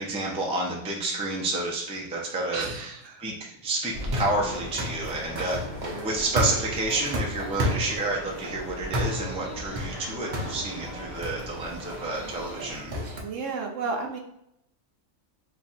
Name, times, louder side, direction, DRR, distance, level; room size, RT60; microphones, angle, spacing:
voice 1, 0.0-2.9 3.2-5.6 6.0-12.9, right 2 dB, 10° right, -2 dB, 0.4 m, -30 dB
voice 2, 2.5-3.3 13.2-14.2, right 4 dB, 70° right, 1 dB, 1.0 m, -32 dB
sound 1, 3.9-13.2, equal, 40° right, 0.8 m, -33 dB
sound 2, 4.6-12.6, equal, 50° left, 1.4 m, -42 dB
3.2 x 2.4 x 4.1 m, 0.79 s
omnidirectional pair, 1.4 m